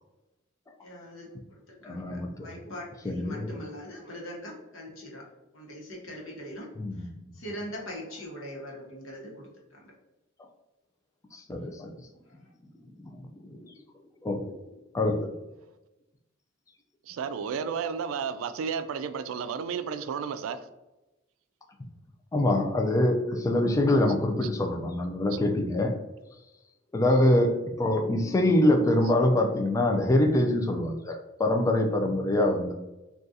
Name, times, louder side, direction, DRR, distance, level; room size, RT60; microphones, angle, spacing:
voice 1, 0.8-5.2 5.5-6.7 7.0-9.8 12.4-12.5, equal, 80° left, 1.0 m, -42 dB
voice 2, 1.8-2.5 3.0-3.6 6.8-7.1 11.3-11.9 13.0-13.7 14.2-14.6 14.9-15.3 22.3-25.9 26.9-32.7, left 1 dB, 15° left, 0.3 m, -25 dB
voice 3, 17.1-20.7, right 6 dB, 90° right, 0.3 m, -32 dB
3.6 x 2.3 x 2.6 m
head